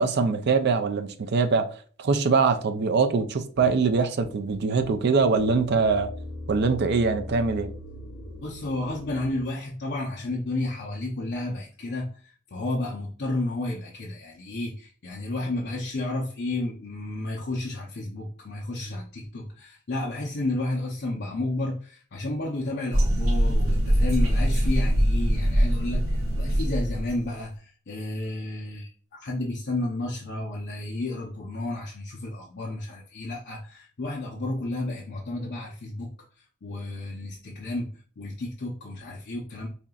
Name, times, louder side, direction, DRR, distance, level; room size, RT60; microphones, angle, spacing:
voice 1, 0.0-1.7 2.0-6.1 6.5-7.7, right 4 dB, 55° right, 0.5 m, -23 dB
sound 1, 3.6-9.5, left 1 dB, 75° left, 1.4 m, -40 dB
voice 2, 8.4-36.1 36.6-39.7, left 2 dB, 55° left, 0.7 m, -32 dB
sound 2, 22.9-27.2, equal, 75° right, 0.8 m, -23 dB
5.1 x 2.8 x 2.4 m
head